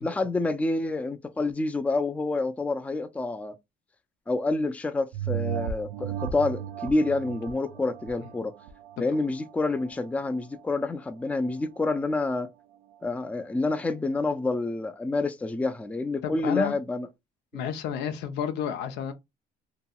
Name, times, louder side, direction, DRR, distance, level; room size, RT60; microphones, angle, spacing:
voice 1, 0.0-3.6 4.3-8.5 9.0-12.5 13.0-17.1 17.5-17.7, left 3 dB, 10° left, 0.4 m, -28 dB
sound 1, 5.1-10.1 10.6-10.7, right 9 dB, 90° right, 0.4 m, -35 dB
voice 2, 16.2-16.7 17.5-19.1, left 8 dB, 85° left, 0.6 m, -31 dB
2.9 x 2.7 x 2.3 m
cardioid pair, 110°, 17 cm